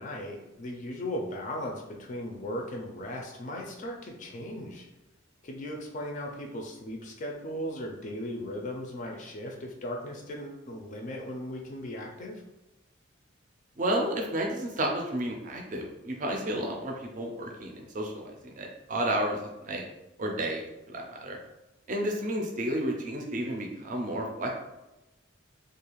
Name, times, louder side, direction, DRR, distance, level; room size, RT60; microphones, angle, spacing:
voice 1, 0.0-4.9 5.4-12.4, left 1 dB, 40° left, 1 dB, 0.3 m, -37 dB
voice 2, 13.8-19.8 20.2-21.4 21.9-24.5, right 1 dB, 40° right, 1 dB, 0.4 m, -31 dB
2.4 x 2.3 x 3.0 m, 0.98 s
head